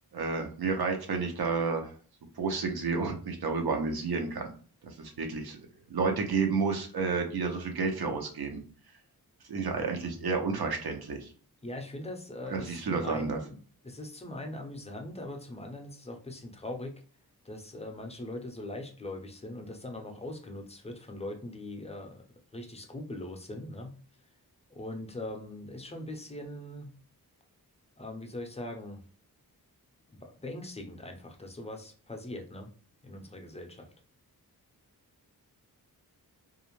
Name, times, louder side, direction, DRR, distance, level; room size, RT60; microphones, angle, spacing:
voice 1, 0.1-1.9 2.4-4.5 4.8-5.6 5.9-8.6 9.5-11.3 12.5-13.4, right 4 dB, 75° right, 4 dB, 0.7 m, -30 dB
voice 2, 11.6-13.6 13.8-16.9 17.4-22.2 22.5-23.9 24.7-26.9 28.0-29.0 30.1-32.7 33.0-33.9, left 1 dB, 15° left, 3 dB, 0.5 m, -41 dB
2.4 x 2.0 x 3.0 m, 0.41 s
wide cardioid pair, 100°, 38 cm